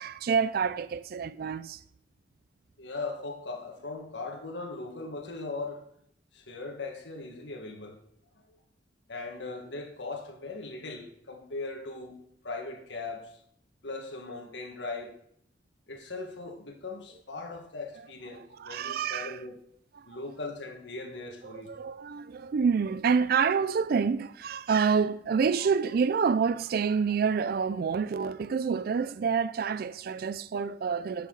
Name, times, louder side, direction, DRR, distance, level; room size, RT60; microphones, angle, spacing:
voice 1, 0.0-1.8 18.4-19.4 20.0-20.1 21.4-31.3, right 6 dB, 55° right, 0.4 m, -28 dB
voice 2, 2.8-5.9 6.3-8.0 8.4-8.6 9.1-12.2 12.4-13.4 13.8-15.1 15.9-19.6 20.1-21.7, left 3 dB, 80° left, 1.6 m, -39 dB
11.0 x 6.8 x 3.9 m
head